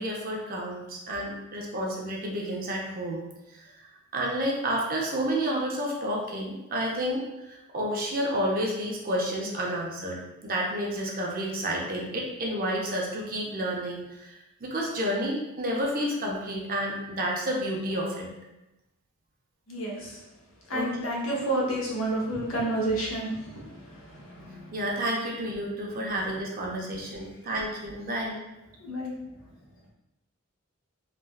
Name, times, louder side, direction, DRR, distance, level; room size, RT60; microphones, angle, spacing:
voice 1, 0.0-3.2 4.1-7.2 7.7-14.0 14.6-18.3 20.7-21.1 24.7-28.4, equal, 40° right, -1 dB, 0.5 m, -30 dB
voice 2, 19.7-20.1 20.7-23.3 24.4-24.6 28.8-29.1, right 1 dB, 65° left, -4 dB, 0.8 m, -29 dB
3.3 x 2.2 x 2.2 m, 0.96 s
head